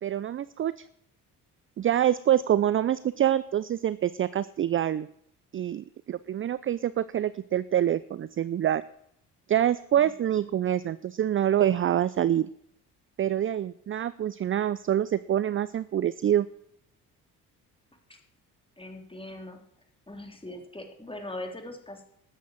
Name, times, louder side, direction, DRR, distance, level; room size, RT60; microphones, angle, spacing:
voice 1, 0.0-0.8 1.8-5.1 5.5-8.8 9.5-12.5 13.2-16.5, right 11 dB, 25° right, 17 dB, 0.5 m, -26 dB
voice 2, 10.0-10.5 18.1-18.2 18.8-19.6 20.1-22.1, left 1 dB, 10° left, 4 dB, 3.4 m, -41 dB
13.0 x 8.2 x 7.5 m, 0.71 s
figure-of-eight pair, 50°, 47 cm